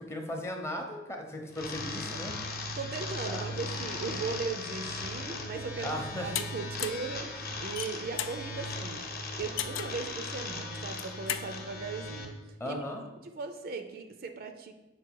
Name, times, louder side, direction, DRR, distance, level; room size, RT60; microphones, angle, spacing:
voice 1, 0.0-2.4 3.3-3.8 5.8-6.3 12.6-13.0, left 1 dB, 15° left, 2 dB, 0.7 m, -37 dB
sound 1, 1.5-12.3, left 2 dB, 50° left, 0.9 m, -38 dB
voice 2, 2.8-9.1 9.4-12.8 13.2-14.7, right 4 dB, 50° right, 7 dB, 0.5 m, -38 dB
sound 2, 6.3-6.5 6.8-7.1 7.6-8.4 9.6-10.0 10.8-11.5, left 10 dB, 70° left, 0.4 m, -34 dB
6.0 x 4.5 x 4.6 m, 1.1 s
head